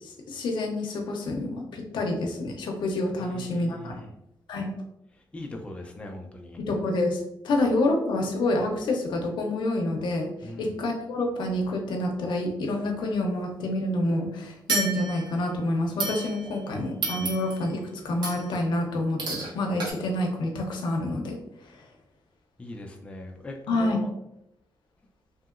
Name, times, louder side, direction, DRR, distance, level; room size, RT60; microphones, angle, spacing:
voice 1, 0.0-4.0 4.5-4.7 6.6-21.8 23.7-24.0, left 2 dB, 85° left, 2 dB, 0.6 m, -28 dB
voice 2, 3.2-4.1 5.1-6.6 10.4-10.8 22.6-24.1, left 2 dB, 15° left, 2 dB, 0.3 m, -40 dB
sound 1, 14.7-15.4 16.0-16.6 17.0-17.7 18.2-18.6 19.2-19.5 19.8-19.9, right 3 dB, 70° right, 0.9 m, -31 dB
2.8 x 2.8 x 2.4 m, 0.86 s
wide cardioid pair, 145°, 8 cm